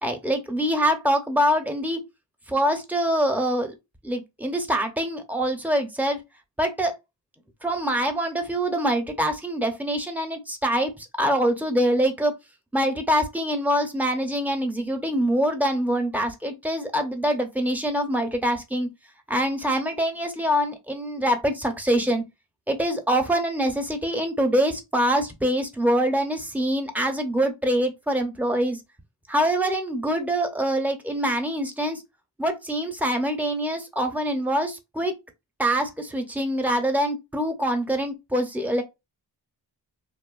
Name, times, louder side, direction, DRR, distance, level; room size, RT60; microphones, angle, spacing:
voice 1, 0.0-2.0 2.5-3.7 4.0-6.2 6.6-6.9 7.6-12.3 12.7-18.9 19.3-22.2 22.7-28.8 29.3-32.0 32.4-35.1 35.6-38.8, equal, 5° right, 0.7 m, -24 dB
2.9 x 2.2 x 2.4 m
wide cardioid pair, 50°, 46 cm